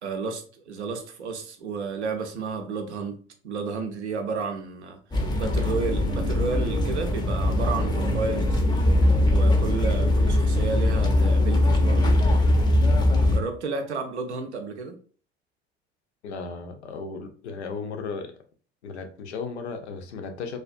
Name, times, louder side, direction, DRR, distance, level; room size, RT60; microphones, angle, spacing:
voice 1, 0.0-5.0 5.4-8.6 9.3-12.2 13.2-15.0, right 4 dB, 80° right, 0.5 m, -32 dB
sound 1, 5.1-13.4, left 1 dB, 15° left, 0.4 m, -21 dB
voice 2, 16.2-18.3 18.8-20.6, left 4 dB, 75° left, 0.5 m, -35 dB
2.3 x 2.2 x 2.4 m
figure-of-eight pair, 60°, 33 cm